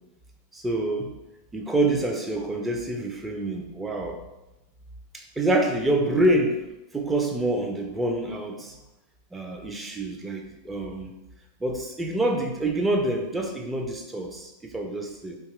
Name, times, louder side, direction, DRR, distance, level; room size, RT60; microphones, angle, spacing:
voice 1, 0.5-1.1 1.5-4.2 5.1-8.8 9.3-11.1 11.6-15.4, right 1 dB, 10° right, 2 dB, 0.5 m, -27 dB
3.5 x 2.8 x 3.1 m, 0.99 s
figure-of-eight pair, 90°, 0 cm